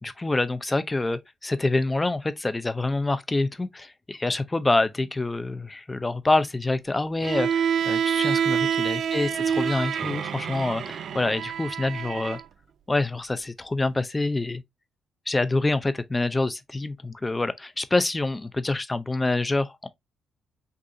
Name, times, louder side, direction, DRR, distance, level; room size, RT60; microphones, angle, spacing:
voice 1, 0.0-12.4 12.9-14.6 15.3-19.9, left 2 dB, 15° left, 0.6 m, -26 dB
Bowed string instrument, 7.2-12.4, right 8 dB, 60° right, 0.4 m, -27 dB
6.3 x 2.6 x 2.7 m
cardioid pair, 90°, 0 cm